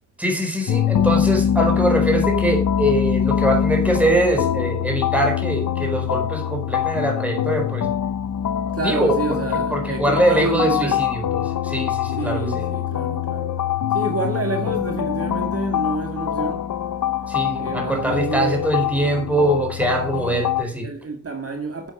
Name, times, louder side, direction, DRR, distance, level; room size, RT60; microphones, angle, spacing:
voice 1, 0.2-7.9 8.8-9.1 9.5-12.7 17.3-20.9, right 1 dB, 5° right, 4.2 m, -22 dB
sound 1, 0.7-20.6, left 9 dB, 90° left, 0.8 m, -24 dB
voice 2, 8.7-11.0 12.2-13.6 13.9-16.7 17.5-18.7 20.1-20.5 20.8-21.9, right 2 dB, 50° right, 2.2 m, -28 dB
11.5 x 7.8 x 5.4 m
wide cardioid pair, 110°, 30 cm